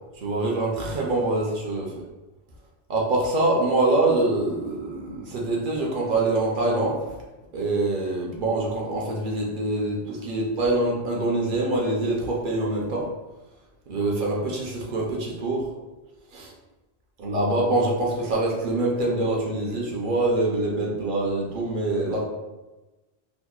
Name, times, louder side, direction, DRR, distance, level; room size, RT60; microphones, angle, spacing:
voice 1, 0.2-2.0 2.9-7.2 7.5-13.1 13.9-15.6 16.3-16.5 17.2-22.2, right 2 dB, 60° right, -2 dB, 0.6 m, -25 dB
2.8 x 2.0 x 2.2 m, 1.1 s
omnidirectional pair, 1.1 m